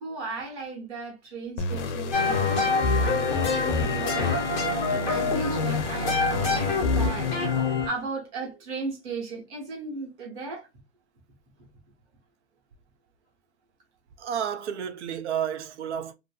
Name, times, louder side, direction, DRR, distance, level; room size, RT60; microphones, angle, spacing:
voice 1, 0.0-4.4 4.9-7.4 7.9-10.7, right 4 dB, 20° right, 0.8 m, -36 dB
sound 1, 1.6-8.0, left 3 dB, 60° left, 0.6 m, -33 dB
sound 2, 2.1-7.9, left 4 dB, 10° left, 0.5 m, -25 dB
voice 2, 14.2-16.1, right 9 dB, 60° right, 0.5 m, -31 dB
2.5 x 2.5 x 2.3 m
hypercardioid pair, 160°, 40 cm